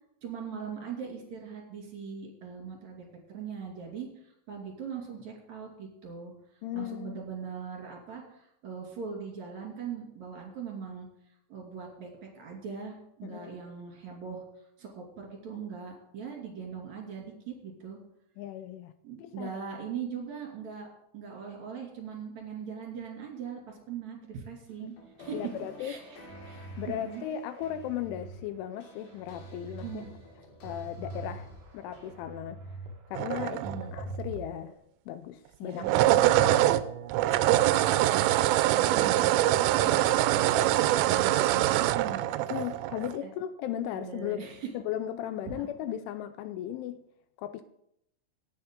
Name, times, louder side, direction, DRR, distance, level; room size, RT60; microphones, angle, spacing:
voice 1, 0.2-11.1 11.5-14.4 14.8-18.0 19.0-20.9 21.1-24.9 25.2-25.4 25.8-26.2 26.4-27.2 29.8-30.1 33.5-33.9 35.6-36.2 37.6-42.6 43.2-43.3 43.9-44.7 45.5-45.7, right 6 dB, 45° right, 0 dB, 3.2 m, -41 dB
voice 2, 6.6-7.2 13.2-13.6 18.4-18.9 19.2-19.5 24.8-24.9 25.3-25.9 26.8-30.0 30.6-31.5 31.7-32.6 33.1-33.6 33.9-34.7 35.1-36.7 39.8-40.0 42.5-47.0 47.4-47.6, left 11 dB, 80° left, 11 dB, 2.8 m, -36 dB
sound 1, 24.7-32.1, left 1 dB, 60° left, 5.0 m, -52 dB
sound 2, 26.3-28.4 28.8-29.9 30.3-32.9 33.2-34.7, right 3 dB, 65° right, 1.8 m, -43 dB
sound 3, 33.2-34.2 35.7-43.2, right 14 dB, 85° right, 3.0 m, -24 dB
18.5 x 8.1 x 3.8 m, 0.74 s
omnidirectional pair, 5.9 m